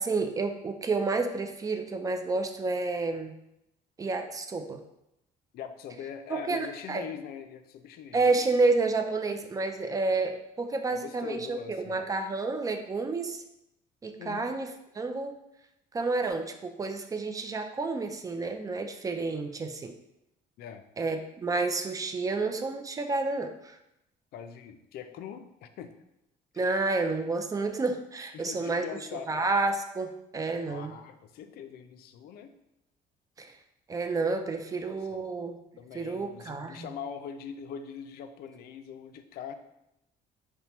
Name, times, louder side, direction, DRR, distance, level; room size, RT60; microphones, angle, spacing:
voice 1, 0.0-3.3 4.0-4.8 6.5-7.0 8.1-13.4 14.0-14.7 14.9-15.4 15.9-19.9 21.0-23.8 26.6-28.9 29.3-30.9 33.4-33.5 33.9-35.6 35.9-36.9, right 3 dB, 20° right, 6 dB, 0.4 m, -30 dB
voice 2, 5.5-8.3 10.9-12.0 14.2-14.5 20.6-20.9 24.3-26.0 26.5-26.8 28.3-29.5 30.7-32.5 35.1-35.2 35.8-39.5, left 8 dB, 70° left, 8 dB, 0.4 m, -42 dB
5.2 x 2.1 x 2.9 m, 0.85 s
cardioid pair, 110°, 17 cm